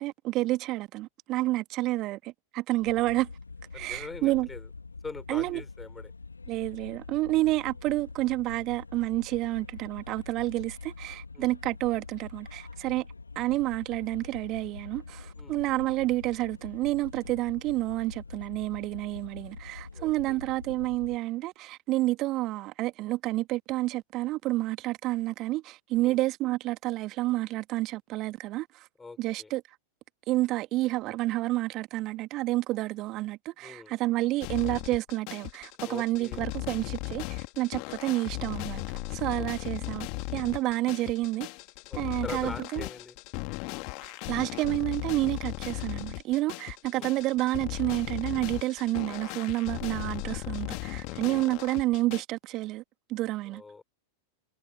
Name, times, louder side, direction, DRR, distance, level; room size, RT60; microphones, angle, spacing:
voice 1, 0.0-3.3 3.7-4.5 5.3-5.6 6.5-13.1 13.4-28.9 29.2-29.6 30.3-38.8 39.1-40.1 40.3-41.5 42.0-42.8 44.0-52.8 53.1-53.6, right 18 dB, 35° right, 1.9 m, -29 dB
sound 1, 2.8-21.2, left 4 dB, 80° left, 2.8 m, -45 dB
voice 2, 3.7-4.7 5.0-6.1 11.3-11.5 15.4-15.6 19.9-20.4 25.9-26.2 29.0-29.5 33.6-33.9 35.8-36.4 39.4-39.5 41.9-43.2 46.9-47.1 51.0-51.4 53.5-53.8, left 4 dB, 10° left, 5.7 m, -43 dB
sound 2, 34.4-52.2, left 32 dB, 45° left, 2.7 m, -37 dB
figure-of-eight pair, 90°, 0 cm